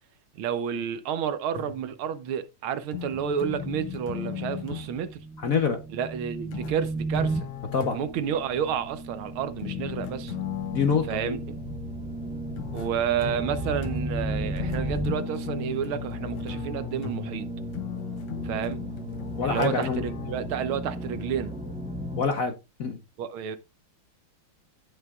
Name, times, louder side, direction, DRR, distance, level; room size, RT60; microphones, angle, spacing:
voice 1, 0.4-5.2 5.9-7.5 7.9-10.3 11.1-11.6 12.7-17.5 18.4-18.8 19.4-21.5 23.2-23.6, right 8 dB, 75° right, 1.6 m, -30 dB
sound 1, 1.5-2.0 2.9-5.0 6.5-8.3 9.6-11.3 12.6-20.4, left 11 dB, 75° left, 1.7 m, -38 dB
sound 2, 2.9-22.2, right 1 dB, 10° right, 0.5 m, -35 dB
voice 2, 5.4-5.8 7.7-8.0 10.7-11.4 19.4-20.0 22.2-23.0, left 5 dB, 55° left, 1.0 m, -26 dB
16.5 x 5.6 x 2.4 m
omnidirectional pair, 2.4 m